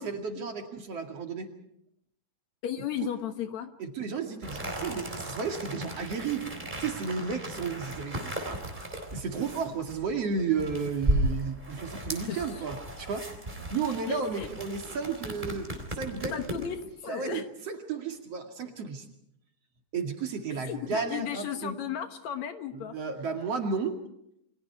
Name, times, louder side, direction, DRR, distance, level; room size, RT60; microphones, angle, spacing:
voice 1, 0.0-1.5 3.8-6.4 6.8-8.7 9.1-13.3 13.7-15.7 15.9-16.6 17.1-19.1 19.9-21.8 22.7-24.0, right 5 dB, 50° right, 4 dB, 3.2 m, -33 dB
voice 2, 2.6-3.7 12.3-12.4 14.1-14.5 16.3-17.4 20.7-23.0, left 9 dB, 65° left, 7 dB, 2.4 m, -34 dB
sound 1, 4.4-16.8, right 1 dB, 15° right, 3.7 m, -35 dB
29.0 x 24.0 x 4.7 m, 0.76 s
omnidirectional pair, 3.7 m